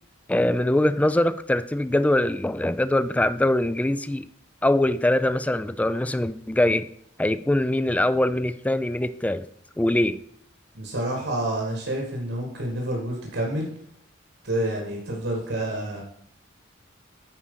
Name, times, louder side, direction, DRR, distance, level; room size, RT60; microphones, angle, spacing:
voice 1, 0.3-4.3 4.6-6.9 7.2-9.5 9.8-10.2, left 1 dB, 5° left, 0.3 m, -23 dB
voice 2, 10.7-13.7 14.4-16.0, right 1 dB, 80° right, 2.0 m, -28 dB
9.7 x 4.4 x 5.5 m
head